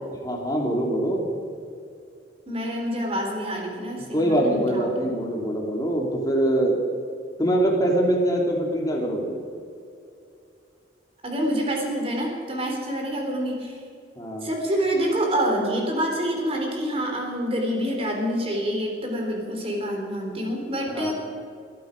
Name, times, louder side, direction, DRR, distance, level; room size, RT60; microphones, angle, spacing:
voice 1, 0.2-1.2 4.1-6.8 7.4-9.4 14.2-14.5 20.9-21.1, right 1 dB, 20° left, -1 dB, 2.7 m, -23 dB
voice 2, 2.5-4.9 11.2-13.8 14.4-21.1, equal, 35° right, 0 dB, 3.5 m, -27 dB
21.5 x 11.5 x 5.1 m, 2.4 s
head